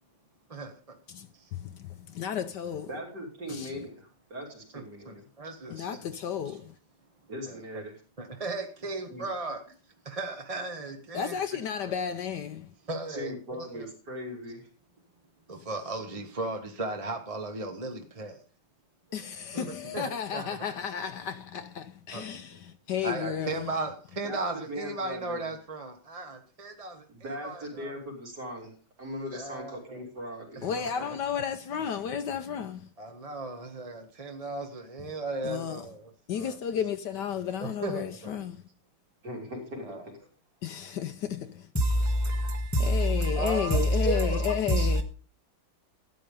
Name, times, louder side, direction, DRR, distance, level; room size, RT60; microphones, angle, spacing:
voice 1, 0.5-0.9 1.3-1.5 4.7-6.6 7.5-7.8 8.2-9.6 10.0-12.0 12.8-13.9 15.5-18.4 19.5-20.8 22.1-22.3 23.0-28.0 29.3-30.0 30.6-31.2 33.0-36.6 37.6-38.4 39.8-40.1 43.4-44.3, right 2 dB, 25° right, 0.9 m, -37 dB
voice 2, 2.1-2.9 3.6-3.7 5.7-6.6 11.1-12.6 19.1-22.5 22.9-23.6 30.6-32.8 35.4-35.8 36.3-38.6 40.6-41.5 42.8-45.0, left 8 dB, 65° left, 1.2 m, -32 dB
voice 3, 2.9-5.3 5.6-6.0 7.3-8.0 9.1-9.3 13.1-14.7 19.2-19.3 22.3-22.4 24.2-25.5 27.1-28.7 29.0-31.2 39.2-40.2 44.3-44.4 44.8-45.0, equal, 55° right, 4.2 m, -40 dB
voice 4, 41.7-44.1 44.5-45.0, equal, 10° left, 1.2 m, -26 dB
13.0 x 9.1 x 5.3 m
omnidirectional pair, 2.2 m